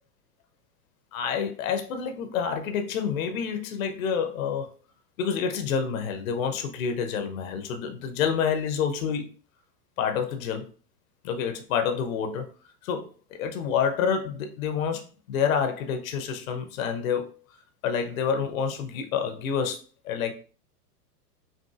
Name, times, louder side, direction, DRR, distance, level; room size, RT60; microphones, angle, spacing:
voice 1, 1.1-4.7 5.2-9.3 10.0-10.7 11.2-12.5 12.8-17.3 17.8-20.3, left 7 dB, 55° left, 6 dB, 0.7 m, -28 dB
5.4 x 2.5 x 2.4 m, 0.39 s
figure-of-eight pair, 95°, 49 cm